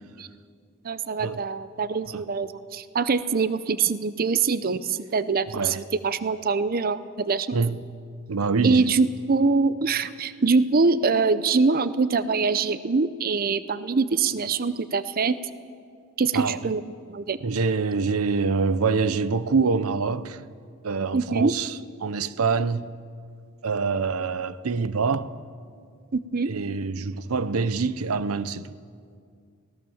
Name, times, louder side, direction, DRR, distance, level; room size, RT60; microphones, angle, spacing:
voice 1, 0.8-7.6 8.6-15.4 16.2-16.8 17.1-17.4 21.1-21.5 26.1-26.5, right 4 dB, 45° right, 0.6 m, -24 dB
voice 2, 8.3-8.9 16.3-16.6 17.4-20.4 20.8-21.7 22.0-22.9 23.6-25.3 26.5-28.6, right 4 dB, 90° right, 0.7 m, -25 dB
23.0 x 17.5 x 7.1 m
head